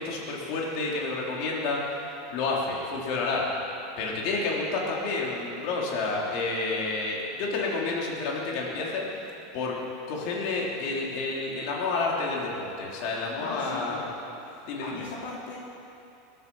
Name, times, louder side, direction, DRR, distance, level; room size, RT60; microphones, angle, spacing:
voice 1, 0.0-1.8 2.3-3.5 4.0-9.1 9.5-9.7 10.1-14.0 14.7-15.0, left 3 dB, 60° left, -3 dB, 3.5 m, -29 dB
voice 2, 13.4-14.2 14.8-15.6, left 3 dB, 85° left, -4 dB, 2.9 m, -38 dB
21.0 x 9.7 x 6.3 m, 2.9 s
supercardioid pair, 135°, 0 cm